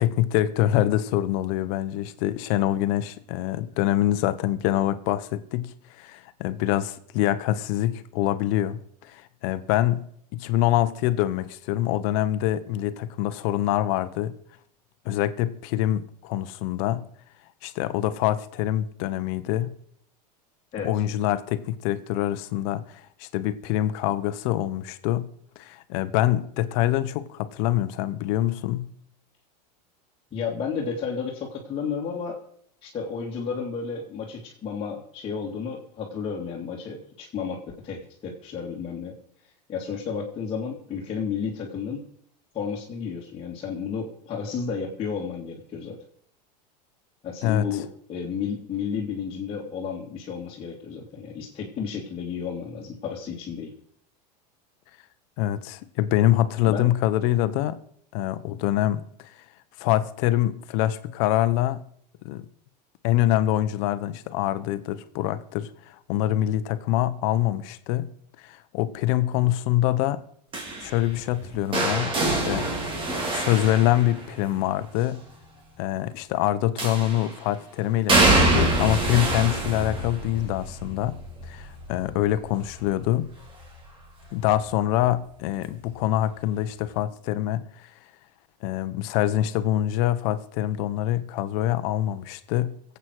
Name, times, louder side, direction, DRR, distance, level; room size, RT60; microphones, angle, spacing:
voice 1, 0.0-10.0 10.3-14.3 15.0-17.0 17.6-19.7 20.8-25.3 25.6-28.9 47.4-47.7 55.4-57.8 58.1-59.4 59.8-61.8 62.2-62.4 63.0-68.1 68.4-70.2 70.8-72.7 73.3-75.2 75.8-81.2 81.4-83.3 84.3-87.9 88.6-93.0, left 13 dB, 55° left, 14 dB, 1.1 m, -25 dB
voice 2, 30.3-32.4 32.8-39.2 39.7-42.0 42.5-46.0 47.2-53.7 56.6-56.9, left 6 dB, 25° left, -4 dB, 2.8 m, -32 dB
sound 1, 70.5-74.6 76.8-77.4 78.1-83.9 84.2-84.7 85.9-86.0, right 2 dB, 25° right, 3.4 m, -26 dB
23.5 x 8.4 x 4.8 m, 0.64 s
supercardioid pair, 135°, 21 cm